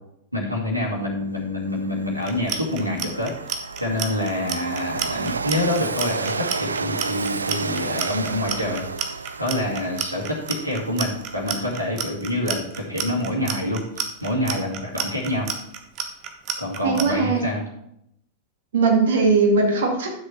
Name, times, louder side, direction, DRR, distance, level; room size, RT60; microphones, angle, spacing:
voice 1, 0.3-3.3 3.8-8.9 9.4-13.8 14.2-15.5 16.6-17.6, left 1 dB, 90° left, -3 dB, 2.2 m, -26 dB
Train, 1.2-1.3 1.7-12.1, right 4 dB, 75° right, 0.4 m, -32 dB
Clock, 2.2-17.0, right 8 dB, 35° right, 1.3 m, -30 dB
voice 2, 16.8-17.4 18.7-20.1, right 4 dB, 60° right, 1 dB, 2.2 m, -19 dB
11.0 x 6.5 x 4.5 m, 0.78 s
figure-of-eight pair, 90°, 0 cm